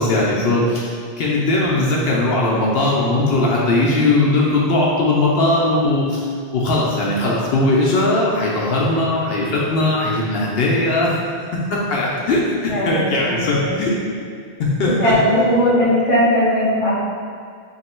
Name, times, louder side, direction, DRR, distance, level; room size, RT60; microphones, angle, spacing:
voice 1, 0.0-6.3 6.5-11.2 11.7-13.9 14.6-15.1, left 2 dB, 75° left, -4 dB, 0.8 m, -19 dB
voice 2, 12.7-13.8 14.8-16.9, equal, 35° left, -6 dB, 0.8 m, -18 dB
2.9 x 2.7 x 4.2 m, 2.1 s
omnidirectional pair, 1.0 m